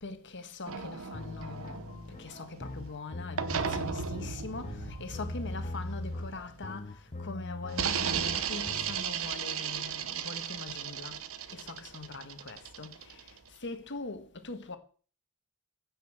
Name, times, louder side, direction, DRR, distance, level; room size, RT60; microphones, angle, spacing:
voice 1, 0.0-1.8 2.2-11.2 11.5-13.3 13.6-14.8, left 3 dB, 55° left, 1.6 m, -42 dB
sound 1, 0.7-2.9 3.4-7.0 7.7-13.5, right 7 dB, 65° right, 1.0 m, -36 dB
sound 2, 1.1-9.0, left 2 dB, 30° left, 0.7 m, -41 dB
15.5 x 5.6 x 7.5 m
head